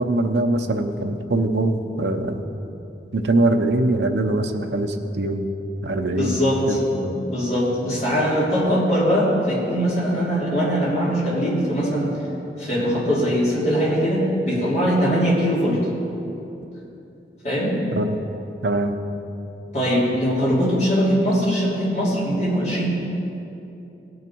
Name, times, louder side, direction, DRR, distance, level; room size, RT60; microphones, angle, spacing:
voice 1, 0.0-2.4 3.1-5.5 5.8-6.4 6.7-6.8 18.0-18.2 18.6-18.9, right 2 dB, 70° right, 5 dB, 0.7 m, -22 dB
voice 2, 6.2-12.1 12.6-15.8 17.4-17.7 19.7-22.9, equal, 40° left, -7 dB, 2.9 m, -21 dB
17.5 x 6.5 x 4.5 m, 2.8 s
head